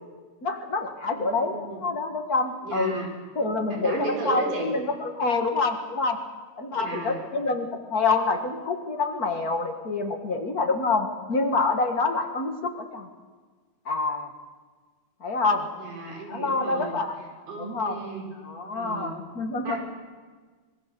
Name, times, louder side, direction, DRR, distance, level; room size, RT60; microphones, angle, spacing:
voice 1, 0.4-3.0 3.3-6.2 6.6-13.1 13.8-14.3 15.2-15.7 16.3-17.2 17.6-18.0 18.4-19.8, left 3 dB, 35° left, 4 dB, 1.7 m, -27 dB
voice 2, 1.1-1.8 2.6-3.1 3.7-4.7 6.7-7.2 15.8-16.9 17.5-18.3 18.6-19.1 19.6-19.8, right 3 dB, 80° right, 1 dB, 5.9 m, -34 dB
26.0 x 20.5 x 6.8 m, 1.4 s
omnidirectional pair, 3.5 m